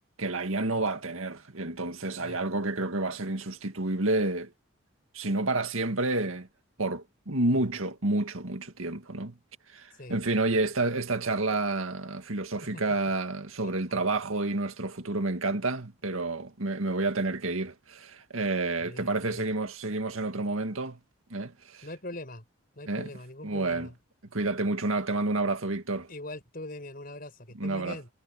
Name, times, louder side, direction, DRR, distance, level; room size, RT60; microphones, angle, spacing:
voice 1, 0.2-4.5 5.1-6.5 6.8-9.4 9.7-21.0 21.3-21.9 22.9-23.1 23.4-23.9 24.3-26.1 27.6-28.0, right 2 dB, 85° right, 2.1 m, -29 dB
voice 2, 18.8-19.5 21.8-22.4 22.8-23.9 26.1-28.1, left 1 dB, 45° left, 5.7 m, -42 dB
head